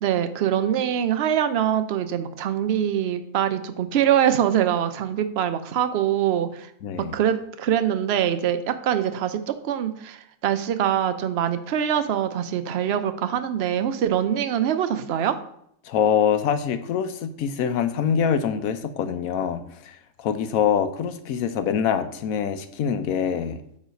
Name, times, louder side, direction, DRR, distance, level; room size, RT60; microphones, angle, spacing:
voice 1, 0.0-6.7 7.0-15.4, right 10 dB, 60° right, 10 dB, 0.7 m, -24 dB
voice 2, 6.8-7.1 15.9-23.6, left 8 dB, 90° left, 10 dB, 1.1 m, -24 dB
8.7 x 3.2 x 5.1 m, 0.71 s
omnidirectional pair, 1.4 m